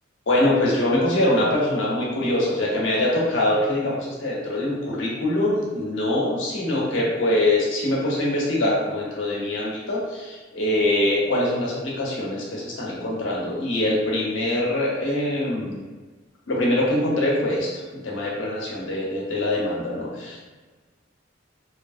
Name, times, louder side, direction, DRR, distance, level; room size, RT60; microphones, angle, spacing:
voice 1, 0.3-15.8 16.5-20.4, left 1 dB, 75° left, -4 dB, 0.8 m, -23 dB
2.9 x 2.5 x 2.4 m, 1.3 s
head